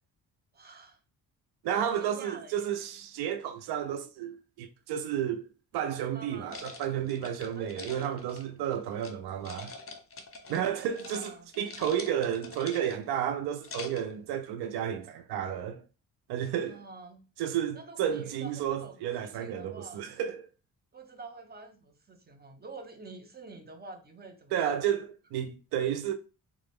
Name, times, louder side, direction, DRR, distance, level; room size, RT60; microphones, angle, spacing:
voice 1, 0.5-1.0 1.6-2.7 6.1-6.6 7.6-8.1 10.8-11.5 16.6-17.2 17.7-20.0 20.9-24.8, right 3 dB, 25° right, 0.9 m, -47 dB
voice 2, 1.6-5.4 5.7-9.7 10.5-15.8 16.3-16.8 17.4-20.5 24.5-26.1, right 9 dB, 85° right, 0.5 m, -32 dB
sound 1, 6.5-9.1 9.4-10.7 10.9-11.3 11.5-13.1 13.5-14.1, left 3 dB, 35° left, 0.9 m, -44 dB
3.7 x 2.4 x 3.5 m
supercardioid pair, 65°, 38 cm